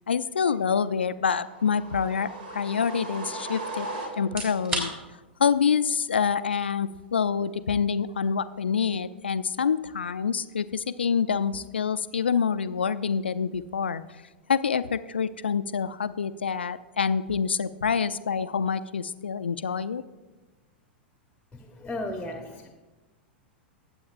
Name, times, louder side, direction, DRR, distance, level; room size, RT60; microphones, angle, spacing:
voice 1, 0.1-3.9 4.2-4.9 5.4-14.0 14.5-20.0, left 6 dB, 75° left, 14 dB, 0.4 m, -26 dB
sound 1, 1.4-4.6, right 2 dB, 60° right, 1.6 m, -37 dB
sound 2, 4.2-19.0, right 2 dB, 25° right, 3.2 m, -44 dB
voice 2, 21.5-22.7, left 1 dB, 10° left, 4 dB, 1.0 m, -35 dB
21.0 x 7.8 x 2.5 m, 1.2 s
figure-of-eight pair, 95°, 6 cm